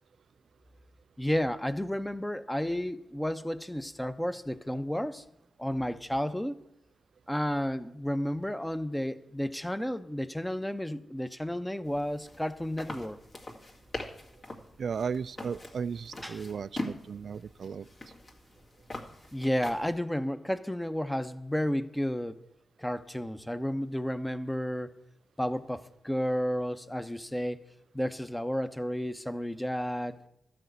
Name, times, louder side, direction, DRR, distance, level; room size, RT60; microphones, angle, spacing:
voice 1, 1.2-5.3 5.6-6.6 7.3-13.2 16.2-16.4 19.3-22.4 22.8-25.0 25.4-27.6 27.9-30.2, equal, 10° left, 11 dB, 0.8 m, -32 dB
sound 1, 11.8-20.0, left 1 dB, 45° left, 2.2 m, -43 dB
voice 2, 14.8-17.9, right 6 dB, 65° right, 18 dB, 0.3 m, -35 dB
12.5 x 5.0 x 7.9 m, 0.79 s
supercardioid pair, 40°, 0 cm